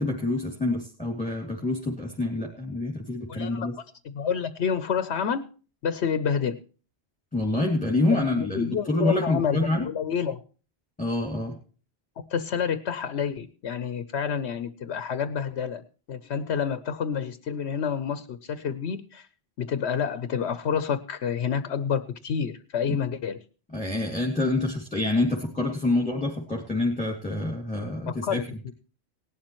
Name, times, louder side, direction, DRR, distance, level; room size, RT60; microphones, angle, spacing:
voice 1, 0.0-3.7 7.3-9.9 11.0-11.6 23.7-28.4, left 2 dB, 5° left, 0 dB, 2.5 m, -27 dB
voice 2, 3.3-5.4 5.8-6.6 8.1-10.4 12.3-19.3 19.6-23.4 28.1-28.7, left 7 dB, 80° left, 13 dB, 1.1 m, -29 dB
18.5 x 12.0 x 3.1 m, 0.37 s
omnidirectional pair, 1.1 m